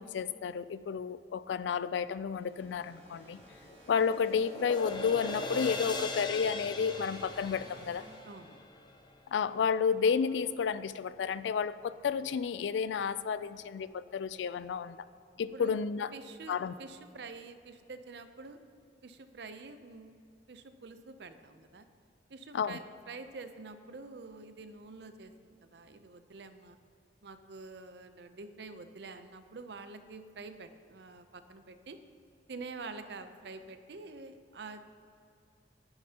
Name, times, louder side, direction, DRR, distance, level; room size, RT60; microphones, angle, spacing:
voice 1, 0.0-3.4 3.9-8.0 9.3-15.0 15.4-16.1 16.5-16.7 22.5-22.8, left 6 dB, 85° left, 16 dB, 0.3 m, -31 dB
sound 1, 2.3-9.0, equal, 35° right, 2.2 m, -53 dB
sound 2, 3.1-9.5, left 3 dB, 25° left, 0.7 m, -40 dB
voice 2, 8.2-8.6 15.5-15.7 16.1-18.6 19.0-20.1 20.5-21.8 22.3-26.8 27.2-32.0 32.5-34.9, right 3 dB, 65° right, 10 dB, 0.6 m, -47 dB
10.5 x 10.0 x 2.9 m, 2.5 s
head